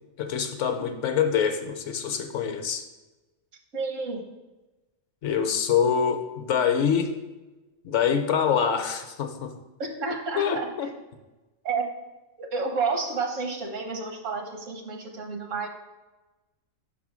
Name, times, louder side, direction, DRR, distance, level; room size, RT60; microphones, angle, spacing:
voice 1, 0.2-2.8 5.2-7.1 7.8-9.5 10.4-10.9, left 7 dB, 65° left, 6 dB, 0.9 m, -25 dB
voice 2, 3.7-4.2 9.8-10.7 11.6-11.8 12.4-15.7, right 4 dB, 70° right, 4 dB, 1.3 m, -30 dB
5.5 x 4.2 x 6.1 m, 1.1 s
omnidirectional pair, 1.4 m